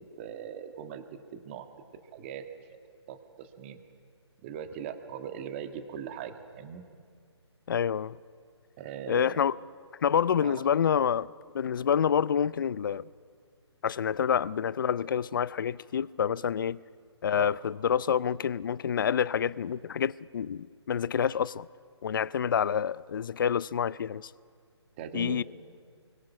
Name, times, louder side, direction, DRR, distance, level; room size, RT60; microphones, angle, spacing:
voice 1, 0.2-1.0 1.3-1.7 2.1-2.4 3.1-3.8 4.4-6.8 8.8-9.5 10.4-10.7 17.3-17.5 25.0-25.4, right 8 dB, 25° right, 1.7 m, -40 dB
voice 2, 7.7-8.2 9.1-9.6 10.0-13.1 13.8-16.8 17.2-21.7 22.0-24.3 25.1-25.4, left 8 dB, 50° left, 0.6 m, -28 dB
29.5 x 23.5 x 6.1 m
figure-of-eight pair, 150°, 15 cm